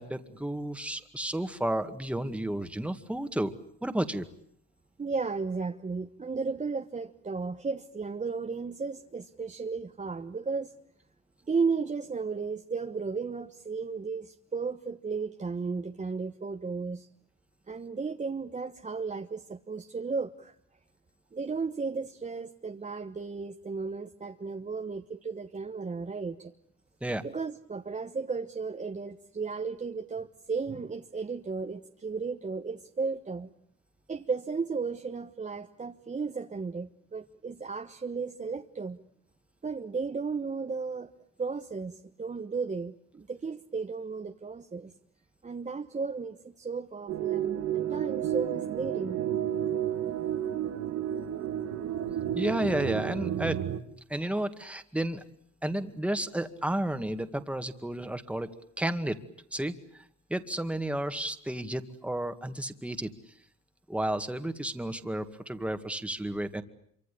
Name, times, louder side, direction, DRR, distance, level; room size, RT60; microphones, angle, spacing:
voice 1, 0.0-3.5 3.8-4.3 27.0-27.2 52.4-53.6 54.1-55.2 55.6-58.5 58.8-59.2 59.5-60.0 60.3-63.1 63.9-66.6, right 1 dB, 5° right, 8 dB, 2.1 m, -32 dB
voice 2, 5.0-10.7 11.5-17.1 17.7-20.5 21.3-26.5 27.2-33.5 34.1-39.0 39.6-41.1 41.4-44.9 45.4-49.2, right 4 dB, 25° right, 5 dB, 1.2 m, -34 dB
sound 1, 47.1-53.8, right 10 dB, 70° right, 1.9 m, -31 dB
26.5 x 25.0 x 8.6 m, 0.67 s
cardioid pair, 90°, 30 cm